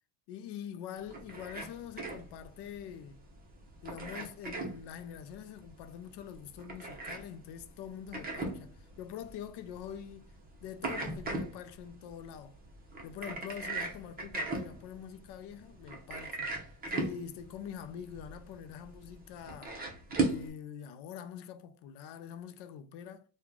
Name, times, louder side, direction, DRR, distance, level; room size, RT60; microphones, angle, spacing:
voice 1, 0.3-3.2 3.8-10.2 10.6-12.6 13.0-16.5 16.9-19.8 20.2-23.2, left 9 dB, 60° left, 0.5 m, -45 dB
sound 1, 1.0-20.5, right 3 dB, 20° right, 0.7 m, -39 dB
3.0 x 2.3 x 3.7 m
cardioid pair, 135°, 46 cm